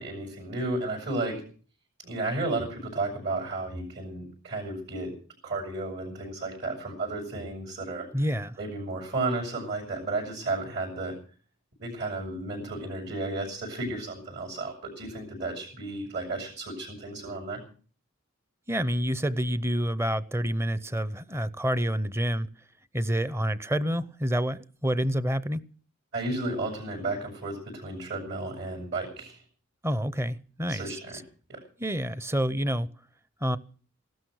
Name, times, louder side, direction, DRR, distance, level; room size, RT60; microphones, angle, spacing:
voice 1, 0.0-1.4 2.0-5.1 5.4-8.2 8.6-11.1 11.8-17.6 26.1-29.4 30.7-31.2 31.5-31.6, right 2 dB, 60° right, 6.6 m, -33 dB
voice 2, 8.1-8.6 18.7-22.5 22.9-25.6 29.8-31.2 31.8-32.9 33.4-33.6, equal, 15° right, 0.7 m, -28 dB
16.5 x 12.5 x 6.4 m
head